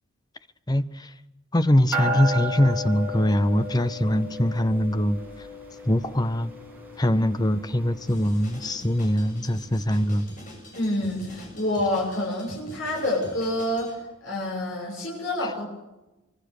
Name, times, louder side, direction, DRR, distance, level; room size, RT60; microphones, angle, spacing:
voice 1, 0.7-1.1 1.5-5.5 5.9-6.5 7.0-10.3, equal, 20° left, 0.8 m, -23 dB
sound 1, 1.9-9.6, equal, 10° right, 7.2 m, -34 dB
Drum kit, 8.1-13.9, left 1 dB, 40° left, 7.4 m, -44 dB
voice 2, 10.7-15.7, left 1 dB, 65° left, 7.3 m, -28 dB
25.0 x 24.0 x 6.7 m
head